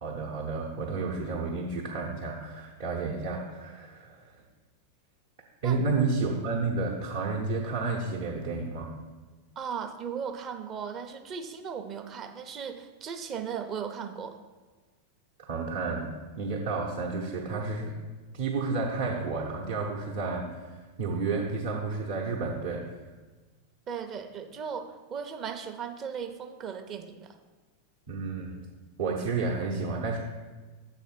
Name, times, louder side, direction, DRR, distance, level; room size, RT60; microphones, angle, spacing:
voice 1, 0.0-4.4 5.6-8.9 15.4-18.0 18.3-22.8 28.1-28.6 29.0-30.2, right 4 dB, 55° right, -3 dB, 0.9 m, -31 dB
voice 2, 9.6-14.4 23.9-27.4, right 7 dB, 30° right, 7 dB, 0.6 m, -37 dB
7.2 x 4.1 x 5.7 m, 1.3 s
figure-of-eight pair, 90°, 0 cm